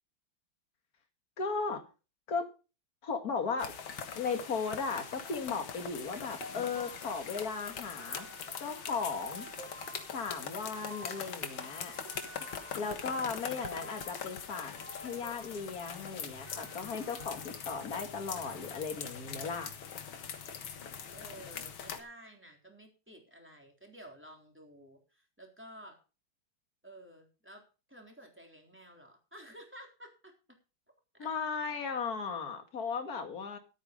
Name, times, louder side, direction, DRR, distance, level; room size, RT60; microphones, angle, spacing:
voice 1, 1.4-1.8 2.3-2.5 3.0-3.7 4.1-8.3 8.6-9.5 10.1-12.0 12.8-14.7 15.0-19.7 31.2-33.6, left 5 dB, 45° left, 6 dB, 2.4 m, -36 dB
sound 1, 3.6-22.0, left 7 dB, 80° left, 2.3 m, -42 dB
sound 2, 6.4-17.7, right 1 dB, 40° right, 1.7 m, -51 dB
voice 2, 12.8-13.5 21.1-26.0 26.8-30.3 31.1-31.3, right 1 dB, 5° right, 2 dB, 3.6 m, -53 dB
13.5 x 9.1 x 5.2 m, 0.33 s
omnidirectional pair, 2.2 m